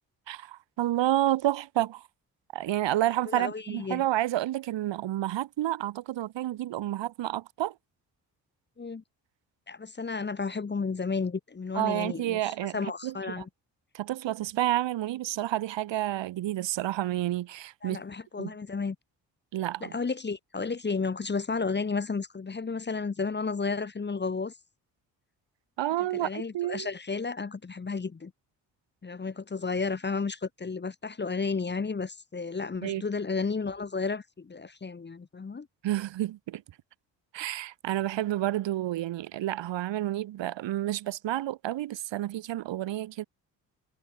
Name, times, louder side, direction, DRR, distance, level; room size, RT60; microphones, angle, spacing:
voice 1, 0.3-2.1 2.5-7.7 11.7-13.4 13.9-18.0 18.4-18.5 19.5-20.0 25.8-26.9 32.8-33.0 35.8-36.6 37.3-43.2, right 14 dB, 60° right, 1.4 m, -30 dB
voice 2, 3.3-4.0 8.8-9.0 9.7-13.5 17.8-19.0 19.8-24.5 26.1-28.3 29.0-35.7, left 4 dB, 20° left, 1.0 m, -32 dB
hypercardioid pair, 45°, 48 cm